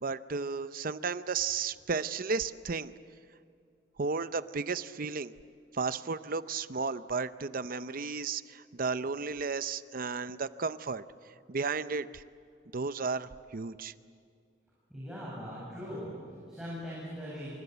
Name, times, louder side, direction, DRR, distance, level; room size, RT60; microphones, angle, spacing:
voice 1, 0.0-2.9 4.0-5.3 5.7-11.0 11.5-12.2 12.7-13.9, right 4 dB, 50° right, 13 dB, 0.7 m, -33 dB
voice 2, 14.9-17.6, equal, 5° right, -7 dB, 7.8 m, -40 dB
27.5 x 26.0 x 8.1 m, 2.2 s
head